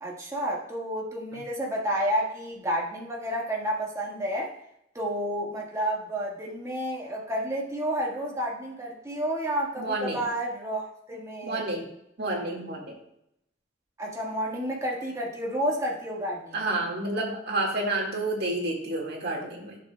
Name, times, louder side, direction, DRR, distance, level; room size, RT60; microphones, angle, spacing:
voice 1, 0.0-4.5 4.9-11.6 14.0-16.6, equal, 15° right, -3 dB, 1.5 m, -30 dB
voice 2, 9.8-10.2 11.4-11.9 12.2-13.0 16.5-19.8, right 2 dB, 60° right, 0 dB, 1.8 m, -29 dB
11.5 x 6.8 x 2.2 m, 0.79 s
head